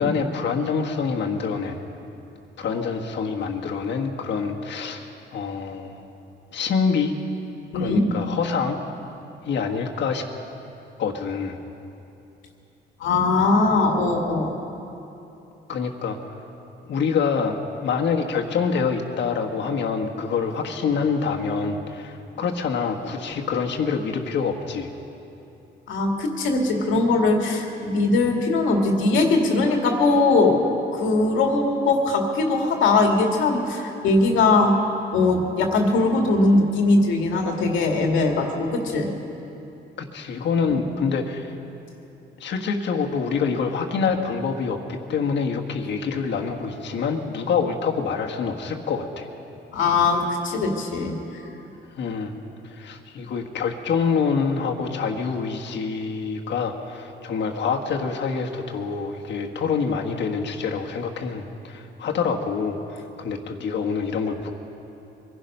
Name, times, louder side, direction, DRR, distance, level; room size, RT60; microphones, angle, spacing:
voice 1, 0.0-1.8 2.6-5.1 5.3-6.0 6.5-7.1 7.7-8.8 9.4-10.2 11.0-11.6 15.7-16.2 16.9-24.9 40.0-41.5 42.4-49.3 52.0-52.4 52.7-64.5, left 5 dB, 65° left, 2 dB, 1.5 m, -26 dB
voice 2, 13.0-14.5 25.9-30.6 30.9-34.8 35.1-39.1 40.7-40.8 49.7-51.2, left 3 dB, 90° left, 2 dB, 2.0 m, -20 dB
23.5 x 11.5 x 5.4 m, 2.9 s
cardioid pair, 95°, 20 cm